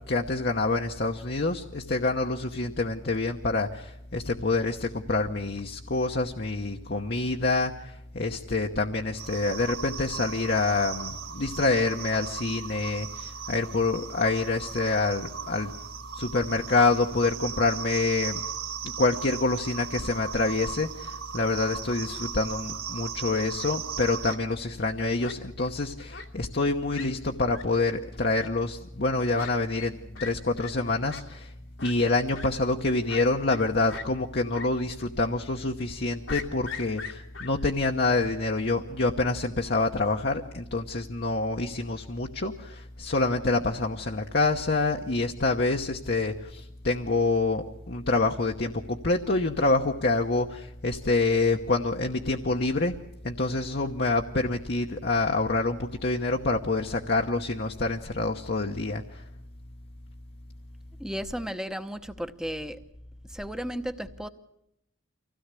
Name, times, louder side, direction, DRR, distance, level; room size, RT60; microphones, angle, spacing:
voice 1, 0.1-15.7 16.1-18.4 18.8-31.5 31.8-53.0 53.2-59.2, left 3 dB, 55° left, 2 dB, 1.0 m, -27 dB
sound 1, 9.2-24.4, right 7 dB, 50° right, 2.1 m, -37 dB
Fowl, 23.3-23.8 24.2-24.4 25.2-25.7 26.1-26.3 26.6-26.7 26.9-27.1 27.5-27.6 28.3-28.5 29.3-29.5 29.8-29.9 30.1-30.3 30.6-30.7 31.1-31.2 31.8-31.9 32.3-32.5 33.1-33.6 33.9-34.1 34.5-34.7 35.0-35.1 36.3-37.5, left 6 dB, 85° left, 2.3 m, -39 dB
voice 2, 61.0-62.8 63.3-64.3, equal, 5° right, 9 dB, 0.9 m, -34 dB
25.0 x 16.5 x 8.3 m, 0.82 s
head